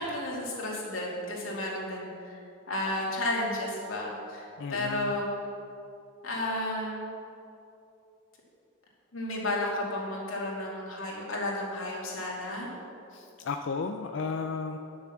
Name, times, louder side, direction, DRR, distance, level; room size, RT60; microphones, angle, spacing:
voice 1, 0.0-5.3 6.2-7.0 9.1-12.7, left 1 dB, 85° left, -3 dB, 2.6 m, -32 dB
voice 2, 4.6-5.1 13.1-14.8, left 4 dB, 60° left, 5 dB, 0.4 m, -34 dB
9.9 x 7.1 x 7.2 m, 2.7 s
head